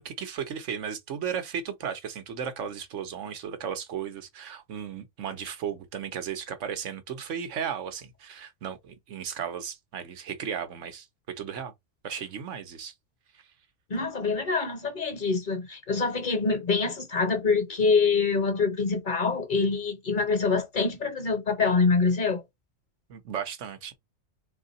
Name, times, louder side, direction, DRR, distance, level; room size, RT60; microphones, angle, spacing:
voice 1, 0.0-11.7 12.0-12.9 13.3-13.4 23.1-23.9, right 8 dB, 80° right, 1.1 m, -35 dB
voice 2, 13.9-22.4, left 4 dB, 45° left, 0.9 m, -25 dB
3.6 x 2.8 x 4.0 m
omnidirectional pair, 1.3 m